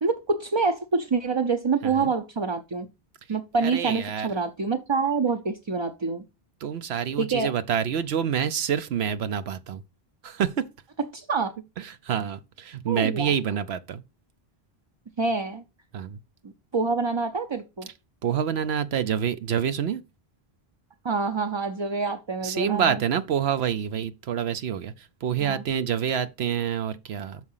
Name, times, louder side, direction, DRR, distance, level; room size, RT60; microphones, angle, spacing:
voice 1, 0.0-2.9 3.3-6.2 7.2-7.5 11.1-11.5 12.9-13.3 15.2-15.6 16.7-17.9 21.0-23.0 25.4-25.6, right 4 dB, 35° right, 0.5 m, -26 dB
voice 2, 3.6-4.3 6.6-9.8 10.2-10.7 11.8-14.0 15.9-16.2 18.2-20.0 22.4-27.4, right 8 dB, 80° right, 0.9 m, -27 dB
6.4 x 4.8 x 5.6 m
omnidirectional pair, 1.1 m